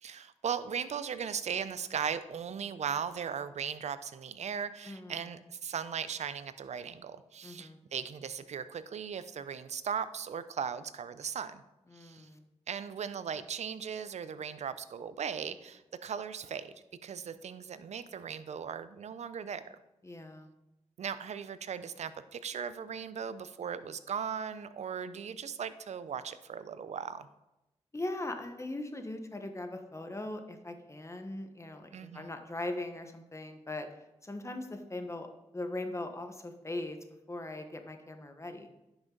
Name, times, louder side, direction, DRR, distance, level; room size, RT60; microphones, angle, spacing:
voice 1, 0.0-11.6 11.9-12.3 12.7-16.7 17.0-19.8 21.0-27.3 31.9-32.3, right 7 dB, 70° right, 14 dB, 0.6 m, -38 dB
voice 2, 4.8-5.2 7.4-7.8 11.9-12.5 20.0-20.5 27.9-33.9 34.2-35.3 35.5-37.0 37.3-38.7, left 2 dB, 25° left, 6 dB, 1.2 m, -40 dB
10.5 x 6.1 x 3.9 m, 0.95 s
cardioid pair, 55°, 12 cm